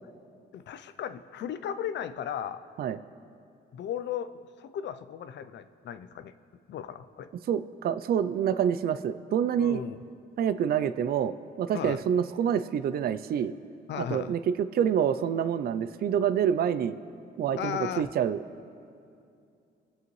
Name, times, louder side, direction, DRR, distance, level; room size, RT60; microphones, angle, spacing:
voice 1, 0.5-2.6 3.7-4.3 4.6-6.3 6.7-7.3 9.6-10.0 11.7-12.0 13.9-14.3 17.6-18.1, left 9 dB, 65° left, 12 dB, 0.5 m, -35 dB
voice 2, 7.5-9.8 10.4-13.5 14.0-17.0 17.4-18.4, right 8 dB, 50° right, 13 dB, 0.4 m, -27 dB
20.0 x 7.7 x 3.1 m, 2.5 s
cardioid pair, 90°, 20 cm